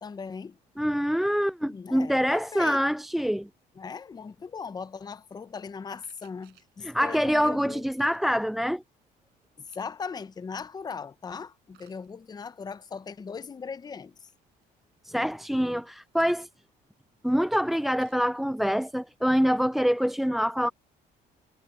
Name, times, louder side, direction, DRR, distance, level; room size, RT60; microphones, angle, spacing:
voice 1, 0.0-0.6 1.6-2.8 3.8-7.9 9.6-14.3, left 5 dB, 25° left, 0.7 m, -39 dB
voice 2, 0.8-3.5 6.8-8.8 15.0-16.5 17.2-20.7, equal, ahead, 0.3 m, -25 dB
sound 1, 6.0-6.8 7.9-8.3 9.4-10.0 11.7-12.1 13.9-14.0 14.2-14.7 16.1-16.5 18.0-18.2, right 16 dB, 80° right, 7.5 m, -62 dB
cardioid pair, 110°, 17 cm